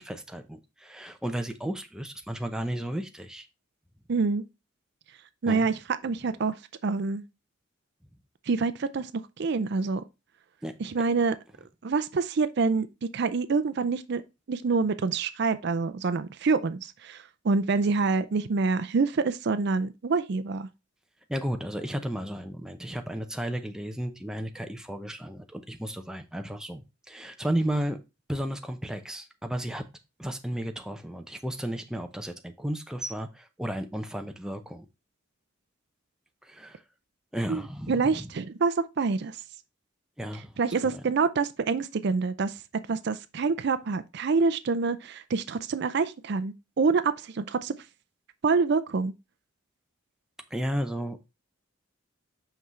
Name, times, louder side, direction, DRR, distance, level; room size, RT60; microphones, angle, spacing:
voice 1, 0.0-3.5 5.5-5.7 10.6-10.7 21.3-26.8 27.1-28.0 28.3-29.8 30.2-34.9 36.4-36.8 37.3-38.3 40.2-40.5 40.8-41.0 50.5-51.3, right 1 dB, 5° right, 0.6 m, -33 dB
voice 2, 4.1-4.4 5.4-5.7 6.0-6.5 6.8-7.2 8.5-9.1 9.4-10.0 10.8-11.3 11.8-12.9 13.1-14.2 14.5-20.7 37.5-37.6 37.9-39.3 40.6-42.5 42.9-47.8 48.4-49.1, right 4 dB, 55° right, 0.4 m, -26 dB
5.7 x 5.6 x 3.1 m
head